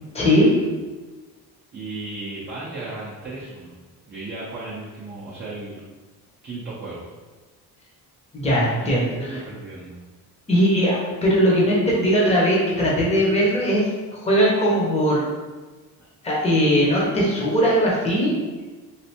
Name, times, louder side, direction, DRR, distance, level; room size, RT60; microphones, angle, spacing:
voice 1, 0.1-0.5 8.3-9.4 10.5-13.9 14.2-15.2 16.2-18.3, equal, 15° left, -5 dB, 0.7 m, -19 dB
voice 2, 1.7-3.7 4.1-5.8 6.4-7.1 8.8-10.0 16.0-16.1, right 2 dB, 25° right, -8 dB, 0.5 m, -35 dB
3.2 x 2.5 x 2.8 m, 1.3 s
cardioid pair, 130°, 40 cm